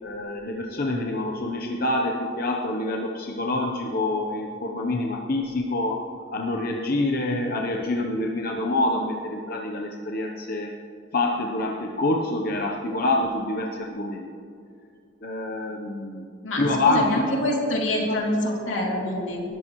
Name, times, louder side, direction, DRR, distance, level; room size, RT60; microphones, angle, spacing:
voice 1, 0.0-6.0 6.3-10.7 11.1-14.3 15.2-16.3 16.6-17.3 18.1-18.2, left 2 dB, 50° left, 1 dB, 0.9 m, -26 dB
voice 2, 16.4-19.4, left 1 dB, 85° left, -2 dB, 2.8 m, -26 dB
20.5 x 13.5 x 3.1 m, 2.5 s
head